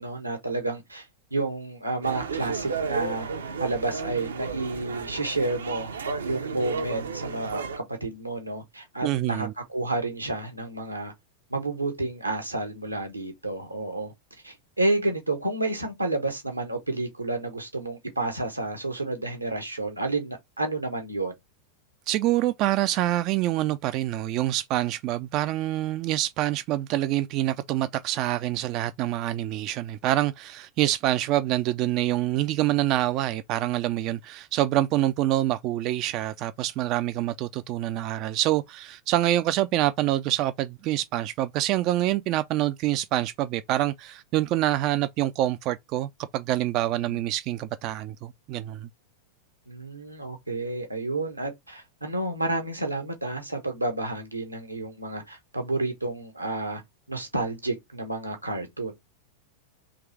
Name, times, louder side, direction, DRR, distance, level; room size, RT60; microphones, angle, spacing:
voice 1, 0.0-3.3 3.6-5.9 6.2-11.1 11.5-14.1 14.4-21.3 46.9-47.2 49.7-56.8 57.1-58.9, right 2 dB, 85° right, 1.2 m, -30 dB
sound 1, 2.0-7.8, right 5 dB, 70° right, 0.7 m, -33 dB
voice 2, 9.0-9.5 22.1-48.9, right 14 dB, 40° right, 0.3 m, -26 dB
3.6 x 3.1 x 4.5 m
figure-of-eight pair, 90°, 0 cm